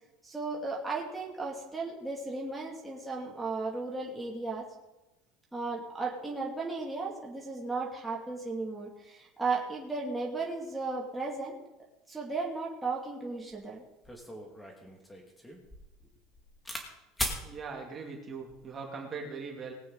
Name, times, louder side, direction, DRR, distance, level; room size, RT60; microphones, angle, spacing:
voice 1, 0.2-4.6 5.5-11.5 12.1-13.8, right 3 dB, 5° right, -3 dB, 2.6 m, -35 dB
sound 1, 13.5-13.6 14.0-16.9 17.2-17.4 18.3-18.7, equal, 10° left, 2.2 m, -38 dB
voice 2, 17.4-19.7, right 5 dB, 30° right, 0 dB, 2.6 m, -40 dB
19.5 x 8.6 x 4.0 m, 1.0 s
supercardioid pair, 125°, 0 cm